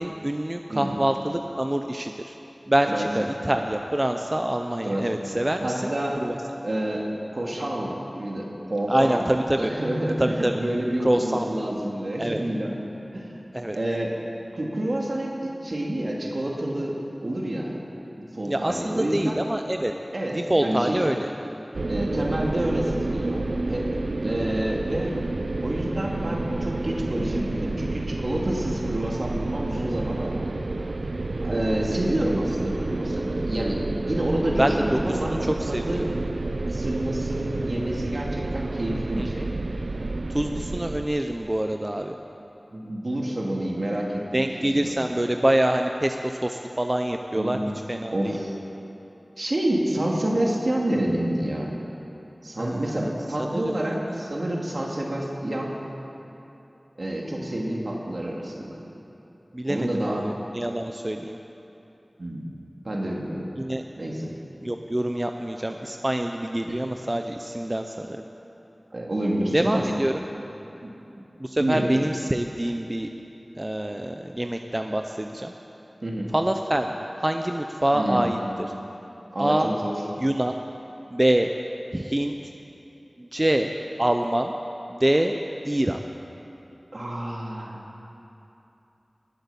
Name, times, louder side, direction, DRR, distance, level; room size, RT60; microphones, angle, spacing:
voice 1, 0.0-2.3 2.7-5.9 6.2-6.4 8.9-9.7 10.2-10.6 11.0-11.5 12.2-12.4 13.5-13.8 18.5-19.9 20.3-21.3 34.6-34.8 35.4-36.1 39.2-39.3 40.3-42.2 44.3-47.6 47.9-48.4 52.6-53.1 53.5-54.2 59.5-61.4 63.6-63.8 64.6-68.2 69.5-70.3 71.4-73.1 73.6-75.5 76.3-76.9 77.2-78.4 79.4-79.7 80.2-80.5 81.1-81.5 81.9-82.3 83.2-83.7 84.0-84.5 84.9-85.3 85.6-86.0, right 1 dB, 25° right, 5 dB, 0.6 m, -25 dB
voice 2, 5.6-6.2 6.6-7.1 7.3-12.8 13.1-13.3 13.7-14.1 14.5-17.7 18.2-19.4 20.1-21.1 21.9-23.9 24.2-25.2 25.6-30.6 31.4-35.3 35.7-36.1 36.7-39.5 42.7-44.9 47.4-47.6 48.1-48.5 49.4-51.7 52.4-55.8 57.0-58.8 59.7-60.3 62.2-62.4 62.8-63.5 64.0-64.3 66.7-66.8 68.9-69.9 70.8-70.9 71.6-71.9 76.0-76.3 77.9-78.3 79.3-79.9 86.9-87.8, right 1 dB, 65° right, -2 dB, 2.4 m, -28 dB
sound 1, 21.7-41.1, right 2 dB, 85° right, 0.6 m, -30 dB
19.5 x 8.0 x 7.1 m, 2.9 s
wide cardioid pair, 50°, 0 cm